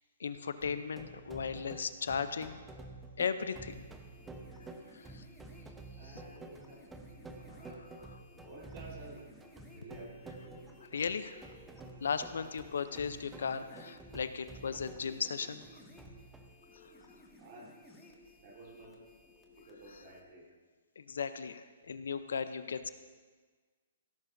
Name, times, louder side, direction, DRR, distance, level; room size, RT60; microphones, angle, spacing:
voice 1, 0.2-2.6 3.2-3.9 4.9-5.2 6.0-6.2 7.6-8.2 10.9-11.4 12.0-15.6 19.9-20.0 21.0-22.9, left 6 dB, 75° left, 12 dB, 0.7 m, -37 dB
sound 1, 0.6-16.5, right 3 dB, 10° right, 1.0 m, -50 dB
too much, 3.6-20.2, left 1 dB, 10° left, 2.0 m, -58 dB
voice 2, 6.0-6.8 7.5-7.8 8.4-9.3 9.7-10.6 17.4-17.7 18.4-19.0 19.5-20.5, right 2 dB, 50° right, -4 dB, 4.0 m, -52 dB
16.5 x 13.5 x 2.7 m, 1.5 s
hypercardioid pair, 135°, 0 cm